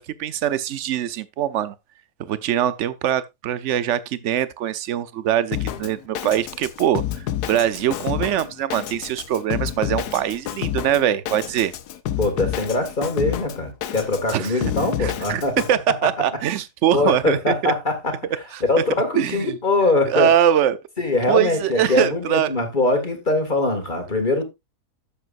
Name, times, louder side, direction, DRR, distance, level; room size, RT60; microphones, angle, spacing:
voice 1, 0.0-1.7 2.3-7.0 7.4-11.7 14.3-14.6 15.0-15.4 15.7-17.7 18.5-18.8 19.1-19.6 20.1-20.8 21.3-22.5, right 10 dB, 60° right, 0.9 m, -22 dB
Drum kit, 5.5-15.7, left 11 dB, 80° left, 1.3 m, -29 dB
voice 2, 12.2-15.6 15.9-16.1 16.9-18.2 18.7-20.3 21.0-24.4, left 2 dB, 30° left, 2.2 m, -22 dB
11.5 x 8.0 x 2.5 m
omnidirectional pair, 1.7 m